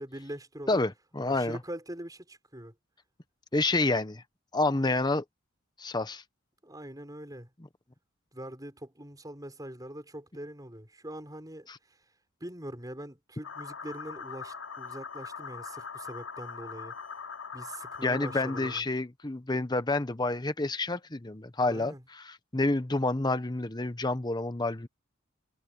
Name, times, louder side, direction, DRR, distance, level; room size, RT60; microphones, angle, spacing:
voice 1, 0.0-0.8 1.3-2.7 6.6-7.5 8.3-12.0 12.4-16.9 17.5-18.9 21.7-22.0, right 1 dB, 20° right, 6.4 m, -43 dB
voice 2, 0.7-1.6 3.5-4.2 4.5-5.2 5.8-6.2 11.7-11.8 18.0-24.9, left 2 dB, 20° left, 1.0 m, -29 dB
sound 1, 13.4-18.8, left 6 dB, 80° left, 2.8 m, -41 dB
head